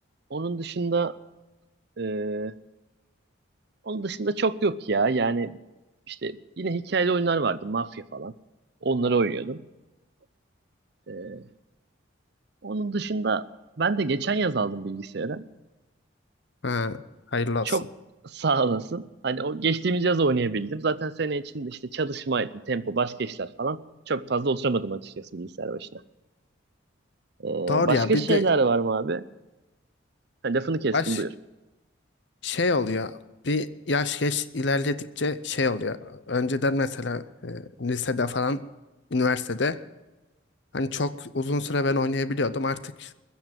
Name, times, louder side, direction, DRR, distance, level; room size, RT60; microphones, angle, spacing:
voice 1, 0.3-1.2 2.0-2.5 3.9-5.6 6.1-8.3 8.8-9.6 11.1-11.4 12.6-13.5 13.8-15.4 17.6-17.8 18.2-23.8 24.1-26.0 27.4-29.2 30.4-31.3, right 3 dB, 55° right, 16 dB, 0.6 m, -26 dB
voice 2, 16.6-17.0 17.3-17.7 27.7-28.4 30.9-31.2 32.4-33.2 33.4-38.6 39.1-39.8 40.7-43.1, left 3 dB, 60° left, 14 dB, 0.7 m, -26 dB
21.5 x 7.2 x 7.4 m, 1.1 s
head